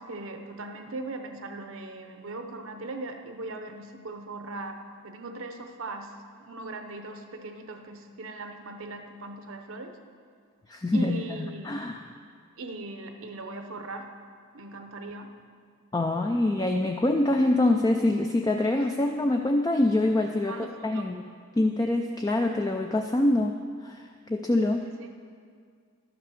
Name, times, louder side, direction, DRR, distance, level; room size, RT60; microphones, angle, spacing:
voice 1, 0.0-6.1 6.4-10.0 10.9-12.0 12.6-14.1 14.5-15.3 18.9-19.1 20.4-21.1 24.8-25.1, right 2 dB, 70° right, 6 dB, 0.9 m, -39 dB
voice 2, 10.7-12.0 15.9-21.2 21.6-23.6 23.8-24.8, left 2 dB, 15° left, 3 dB, 0.3 m, -25 dB
12.0 x 5.9 x 6.8 m, 2.1 s
head